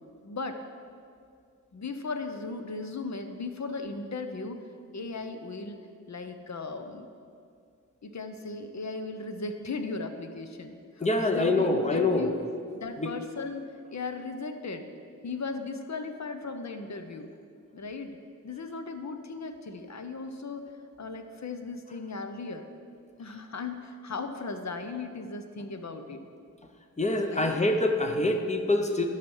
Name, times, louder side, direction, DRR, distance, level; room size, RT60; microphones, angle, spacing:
voice 1, 0.2-0.6 1.7-4.6 4.9-5.8 6.1-7.1 8.0-12.4 12.7-14.9 15.2-17.3 17.7-18.2 18.4-20.7 21.0-22.7 23.2-26.2 27.2-27.6, left 3 dB, 60° left, 7 dB, 0.8 m, -37 dB
voice 2, 11.0-12.4 13.0-13.1 27.0-29.1, left 2 dB, 20° left, 4 dB, 0.8 m, -25 dB
12.0 x 5.8 x 5.5 m, 2.3 s
wide cardioid pair, 90°, 31 cm